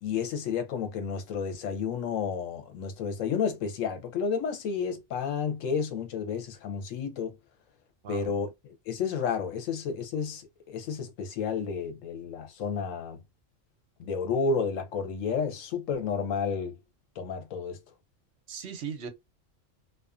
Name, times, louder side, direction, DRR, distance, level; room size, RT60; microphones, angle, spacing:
voice 1, 0.0-7.3 8.1-13.2 14.0-16.8 17.2-17.8, left 6 dB, 85° left, 1.1 m, -31 dB
voice 2, 8.0-8.4 18.5-19.1, right 7 dB, 65° right, 0.8 m, -38 dB
2.4 x 2.3 x 2.4 m
omnidirectional pair, 1.3 m